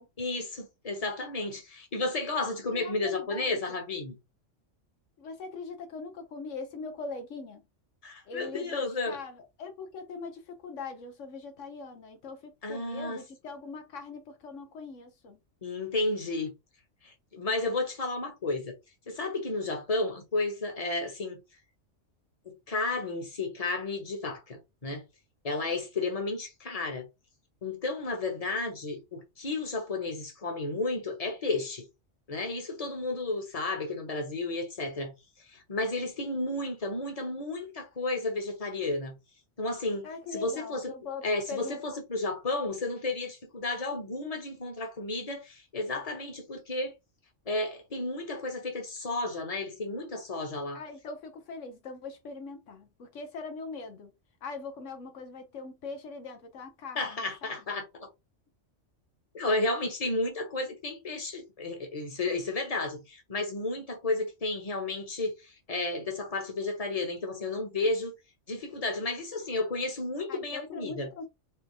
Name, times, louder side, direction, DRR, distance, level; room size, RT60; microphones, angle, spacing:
voice 1, 0.2-4.2 8.0-9.2 12.6-13.2 15.6-16.5 17.0-18.8 19.1-21.4 22.4-25.0 25.4-27.1 27.6-31.9 32.3-39.2 39.6-40.9 41.2-46.9 47.4-50.8 56.9-57.8 59.3-68.1 68.5-71.1, left 2 dB, 30° left, 1.3 m, -32 dB
voice 2, 2.7-3.8 5.2-7.6 8.3-15.4 40.0-42.0 50.7-54.1 54.4-57.8 70.3-71.3, left 4 dB, 80° left, 1.1 m, -41 dB
4.8 x 2.8 x 3.4 m
omnidirectional pair, 1.3 m